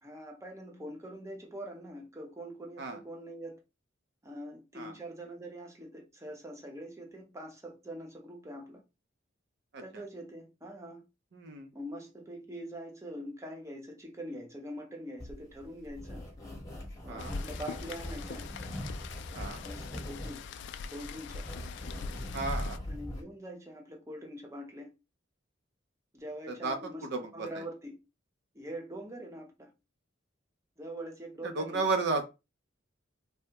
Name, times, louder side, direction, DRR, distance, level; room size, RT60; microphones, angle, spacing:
voice 1, 0.0-3.6 4.2-8.8 9.8-11.0 11.7-16.2 17.0-18.5 19.6-20.4 20.9-21.4 22.9-24.9 26.1-27.1 27.3-28.0 28.5-29.7 30.8-31.9, right 1 dB, 15° right, 0.7 m, -43 dB
voice 2, 11.3-11.7 17.1-17.3 19.3-19.6 22.3-22.8 26.5-26.8 27.0-27.6 31.6-32.2, right 3 dB, 60° right, 0.5 m, -33 dB
sound 1, 15.2-23.2, left 1 dB, 20° left, 0.9 m, -41 dB
Rain, 17.2-22.8, left 6 dB, 65° left, 0.3 m, -44 dB
3.3 x 2.0 x 2.8 m
head